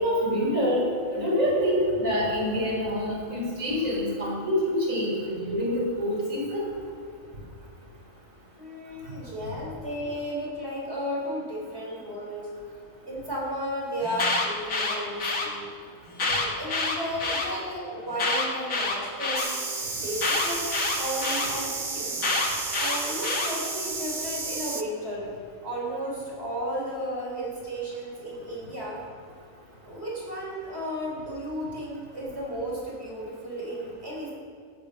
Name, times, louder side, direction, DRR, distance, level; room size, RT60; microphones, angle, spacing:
voice 1, 0.0-6.6, equal, 75° right, -4 dB, 4.3 m, -26 dB
voice 2, 8.6-12.5 13.0-15.7 16.1-19.4 20.0-20.7 21.0-22.2 22.8-25.3 25.6-29.0 29.8-34.3, equal, 50° right, -4 dB, 4.6 m, -34 dB
Alarm, 14.0-15.5 16.1-17.5 18.1-19.5 20.2-21.5 22.2-23.5, left 3 dB, 80° left, 2.1 m, -27 dB
sound 1, 19.3-24.8, right 4 dB, 30° right, 0.6 m, -32 dB
15.0 x 8.8 x 6.5 m, 2.3 s
omnidirectional pair, 1.4 m